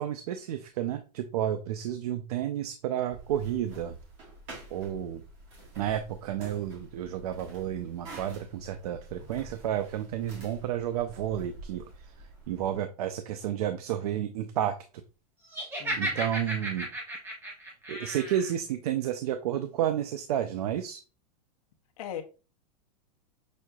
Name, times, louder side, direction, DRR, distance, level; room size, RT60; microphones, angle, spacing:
voice 1, 0.0-3.9 4.7-5.2 5.8-12.1 12.5-14.8 16.0-16.9 17.9-21.0, right 10 dB, 70° right, 0.5 m, -31 dB
sound 1, 3.1-12.8, right 2 dB, 30° right, 1.6 m, -48 dB
Laughter, 15.5-18.5, right 1 dB, 10° right, 1.0 m, -34 dB
voice 2, 15.8-16.2 22.0-22.2, left 10 dB, 60° left, 1.0 m, -38 dB
6.3 x 2.7 x 2.3 m
supercardioid pair, 165°, 21 cm